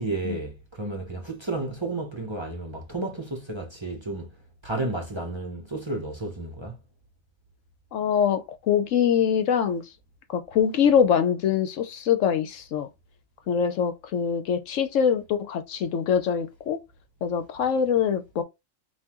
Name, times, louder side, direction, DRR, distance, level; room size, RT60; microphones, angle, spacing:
voice 1, 0.0-4.4 4.6-6.8, right 2 dB, 25° right, 0.8 m, -32 dB
voice 2, 7.9-9.8 10.3-12.9 13.5-16.8 17.2-18.4, left 7 dB, 70° left, 1.0 m, -24 dB
5.5 x 2.5 x 2.9 m
omnidirectional pair, 1.4 m